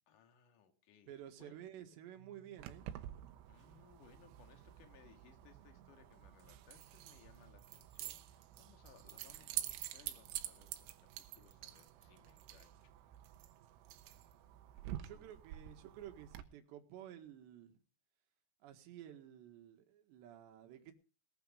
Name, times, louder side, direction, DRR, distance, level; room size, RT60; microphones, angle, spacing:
voice 1, 0.1-1.1 1.4-1.6 3.5-13.0 14.7-15.4, left 8 dB, 50° left, 3.0 m, -65 dB
voice 2, 1.1-2.9 15.0-17.8 18.6-20.9, right 11 dB, 70° right, 3.7 m, -53 dB
Keyboard (musical), 2.1-5.8, right 13 dB, 45° right, 2.3 m, -70 dB
Keys jangling, 2.6-16.4, right 13 dB, 85° right, 3.6 m, -48 dB
19.5 x 9.8 x 4.9 m
omnidirectional pair, 5.5 m